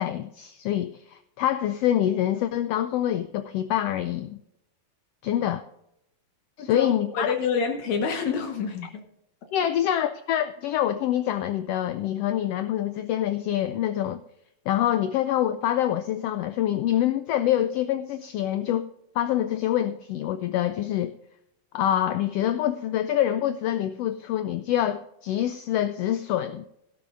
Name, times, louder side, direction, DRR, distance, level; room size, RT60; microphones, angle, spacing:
voice 1, 0.0-4.4 5.2-5.6 6.6-7.3 9.5-14.2 14.7-18.9 19.1-21.1 21.7-26.6, left 11 dB, 85° left, 11 dB, 1.4 m, -26 dB
voice 2, 7.1-9.0, left 5 dB, 70° left, 4 dB, 2.4 m, -27 dB
17.5 x 12.0 x 2.5 m, 0.79 s
omnidirectional pair, 3.3 m